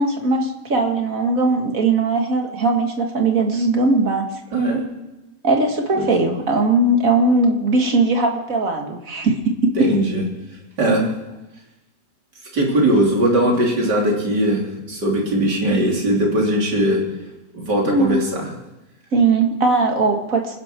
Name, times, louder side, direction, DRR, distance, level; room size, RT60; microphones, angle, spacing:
voice 1, 0.0-4.3 5.4-9.9 17.8-18.2 19.1-20.6, right 3 dB, 55° right, 3 dB, 2.3 m, -19 dB
voice 2, 4.5-4.8 5.9-6.1 9.8-10.2 10.8-11.1 12.5-17.0 17.5-18.5, right 1 dB, 85° right, -1 dB, 3.8 m, -19 dB
27.0 x 11.0 x 4.5 m, 0.98 s
omnidirectional pair, 1.8 m